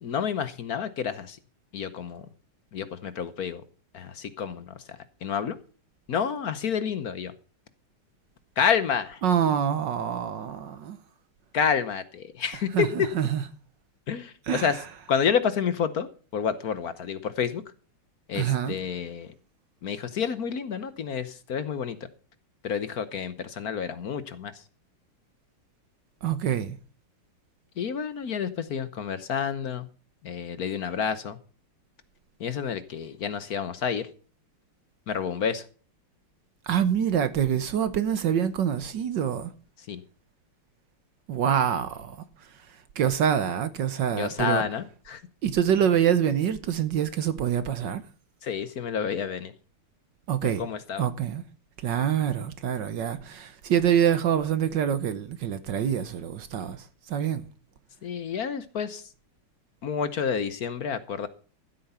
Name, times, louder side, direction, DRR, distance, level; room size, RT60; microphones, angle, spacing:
voice 1, 0.0-1.4 1.7-2.3 2.7-3.6 3.9-5.5 6.1-7.3 8.6-9.2 11.5-12.9 14.1-14.8 15.1-17.6 18.3-19.3 19.8-22.0 22.6-24.6 27.8-29.9 30.2-31.4 32.4-34.1 35.1-35.7 39.9-40.0 44.2-45.2 48.4-49.5 50.4-51.1 58.0-59.1 59.8-61.3, left 7 dB, 55° left, 1.2 m, -29 dB
voice 2, 9.2-11.0 12.7-13.4 14.5-14.8 18.3-18.8 26.2-26.8 36.7-39.5 41.3-42.2 42.7-44.6 45.4-48.0 50.3-50.7 51.0-51.4 51.8-57.5, right 9 dB, 65° right, 1.5 m, -26 dB
14.5 x 8.4 x 5.6 m
omnidirectional pair, 2.3 m